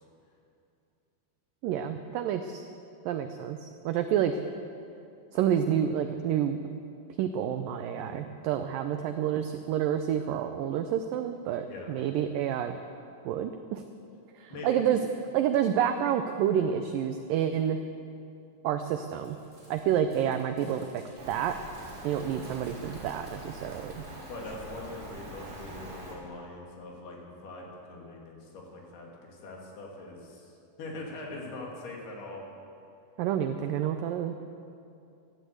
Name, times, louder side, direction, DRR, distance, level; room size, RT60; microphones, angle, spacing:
voice 1, 1.6-2.6 3.0-4.4 5.3-6.6 7.2-12.8 13.2-13.8 14.4-15.0 15.3-17.8 18.6-19.4 19.7-21.5 22.0-24.0 33.2-34.3, right 9 dB, 85° right, 8 dB, 1.9 m, -29 dB
voice 2, 14.5-14.8 24.3-32.5, left 2 dB, 70° left, -1 dB, 4.2 m, -42 dB
Crumpling crinkling, 19.2-25.1, right 1 dB, 20° right, 4.0 m, -58 dB
Rain, 21.2-26.1, right 1 dB, 45° right, 5.2 m, -44 dB
14.5 x 12.0 x 8.0 m, 2.6 s
omnidirectional pair, 4.7 m